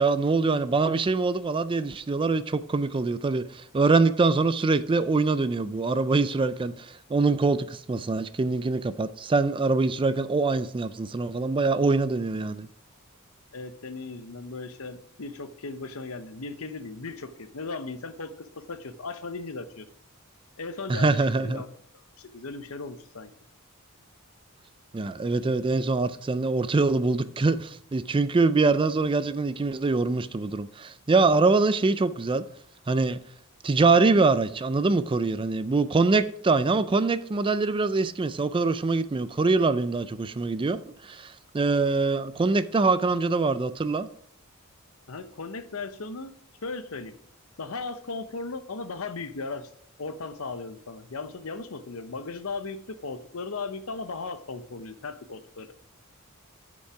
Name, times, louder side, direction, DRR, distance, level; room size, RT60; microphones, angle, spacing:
voice 1, 0.0-12.7 20.9-21.6 24.9-32.4 32.9-33.2 33.6-44.1, right 3 dB, 25° right, 0.4 m, -24 dB
voice 2, 13.5-19.9 20.6-21.7 22.2-23.3 45.1-46.3 46.6-47.2 47.6-49.7 50.0-55.7, left 3 dB, 75° left, 0.8 m, -37 dB
10.0 x 5.3 x 4.8 m
head